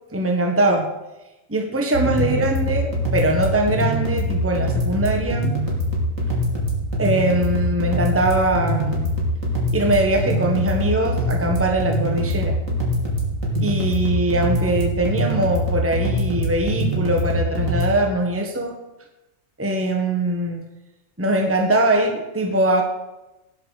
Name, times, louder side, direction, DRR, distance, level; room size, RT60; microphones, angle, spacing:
voice 1, 0.1-0.9 1.5-5.6 7.0-9.1 9.7-12.6 13.6-18.8 19.6-20.6 21.2-22.8, right 1 dB, 10° right, 3 dB, 1.4 m, -22 dB
sound 1, 1.9-17.9, equal, 80° right, 3.6 m, -23 dB
15.5 x 10.0 x 6.6 m, 1.0 s
omnidirectional pair, 1.4 m